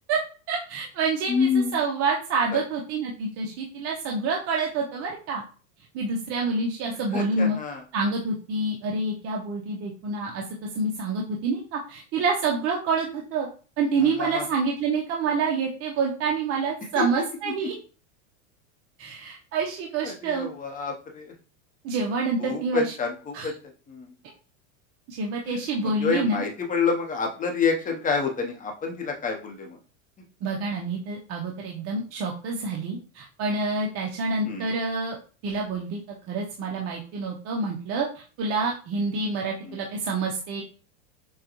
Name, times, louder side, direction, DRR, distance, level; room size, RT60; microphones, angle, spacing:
voice 1, 0.5-5.4 5.9-7.6 7.9-10.4 10.8-13.5 13.8-17.7 19.0-20.5 21.8-22.9 23.3-23.5 25.1-26.4 30.4-35.2 35.4-36.0 36.3-40.6, right 4 dB, 35° right, -1 dB, 0.6 m, -27 dB
voice 2, 1.3-1.8 2.5-2.6 7.1-7.8 14.0-14.5 17.0-17.1 17.4-17.5 20.0-21.3 22.4-23.5 23.9-24.1 25.4-29.8 34.4-34.7 39.6-39.8, left 5 dB, 20° left, 2 dB, 0.8 m, -28 dB
6.3 x 2.2 x 3.0 m, 0.37 s
supercardioid pair, 130°, 41 cm